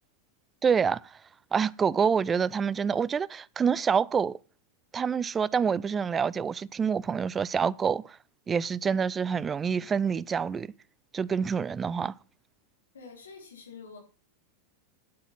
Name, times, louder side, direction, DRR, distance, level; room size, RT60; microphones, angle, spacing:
voice 1, 0.6-1.0 1.5-4.4 4.9-8.2 8.5-10.7 11.1-12.1, right 6 dB, 20° right, 0.4 m, -27 dB
voice 2, 12.9-14.0, left 5 dB, 65° left, 3.9 m, -46 dB
9.7 x 8.5 x 5.8 m
figure-of-eight pair, 90°, 0 cm